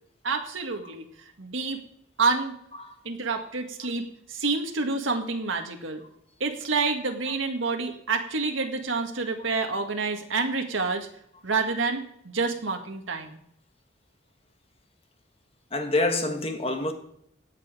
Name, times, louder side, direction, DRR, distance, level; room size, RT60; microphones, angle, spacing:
voice 1, 0.2-1.1 1.4-1.8 2.2-2.5 3.0-4.0 4.3-6.0 6.4-11.1 11.4-13.4, right 4 dB, 75° right, 1.8 m, -28 dB
voice 2, 15.7-16.9, left 2 dB, 30° left, 1.4 m, -26 dB
17.0 x 7.2 x 5.0 m
head